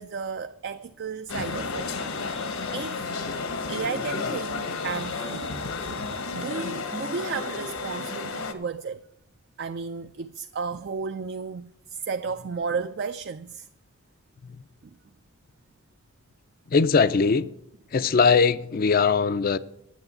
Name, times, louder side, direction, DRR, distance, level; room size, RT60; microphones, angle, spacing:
voice 1, 0.0-1.9 2.3-2.4 2.7-3.1 3.7-5.6 5.9-9.0 9.6-13.7 14.8-14.9, right 5 dB, 50° right, 0.4 m, -33 dB
sound 1, 1.3-8.5, left 4 dB, 75° left, 1.1 m, -32 dB
voice 2, 16.7-17.5 17.9-19.6, left 5 dB, 40° left, 0.4 m, -20 dB
9.2 x 8.0 x 8.0 m
head